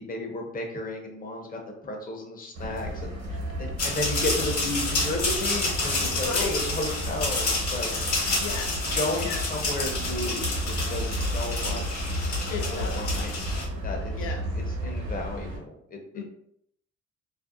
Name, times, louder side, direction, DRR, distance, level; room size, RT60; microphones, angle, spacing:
voice 1, 0.0-3.2 3.6-7.9 8.9-12.1 12.7-13.4 13.8-14.1 14.8-16.2, left 2 dB, 30° left, 1 dB, 0.7 m, -33 dB
sound 1, 2.5-15.6, equal, 65° right, 1.1 m, -32 dB
sound 2, 3.8-13.7, left 2 dB, 50° left, 1.0 m, -29 dB
voice 2, 6.0-6.6 8.3-8.8 9.2-9.4 12.5-13.1 14.1-14.4 16.1-16.2, left 5 dB, 90° left, 1 dB, 0.5 m, -35 dB
2.5 x 2.1 x 2.5 m, 0.71 s
cardioid pair, 90°, 30 cm